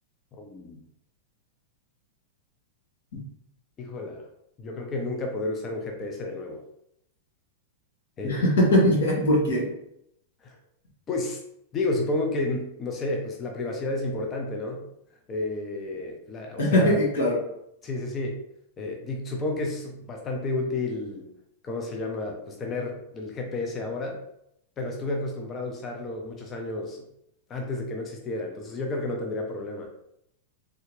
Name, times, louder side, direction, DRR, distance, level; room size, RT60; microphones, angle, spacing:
voice 1, 0.3-0.8 3.8-4.3 4.6-6.6 8.2-8.5 10.4-10.6 11.1-11.4 11.7-14.9 15.3-17.0 17.8-18.4 18.8-21.3 21.6-24.2 24.8-27.1 27.5-29.9, left 2 dB, 20° left, 2 dB, 0.4 m, -31 dB
voice 2, 8.2-9.7 16.6-17.4, left 1 dB, 85° left, -2 dB, 1.4 m, -21 dB
3.3 x 2.8 x 3.1 m, 0.77 s
supercardioid pair, 170°, 0 cm